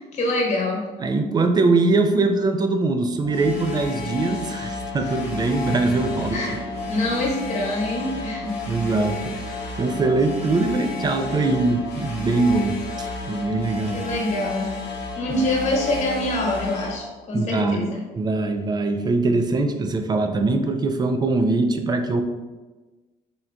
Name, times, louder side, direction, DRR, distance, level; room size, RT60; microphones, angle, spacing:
voice 1, 0.0-0.8 5.0-5.1 6.3-6.6 6.9-8.6 13.9-14.7 15.1-18.0, left 1 dB, 40° left, -2 dB, 1.1 m, -25 dB
voice 2, 1.0-6.4 8.7-9.4 9.8-14.0 17.3-17.8 18.2-22.2, right 3 dB, 25° right, 6 dB, 0.4 m, -22 dB
sound 1, 3.2-17.0, left 3 dB, 90° left, 0.8 m, -32 dB
3.8 x 3.6 x 2.3 m, 1.2 s
cardioid pair, 110°, 17 cm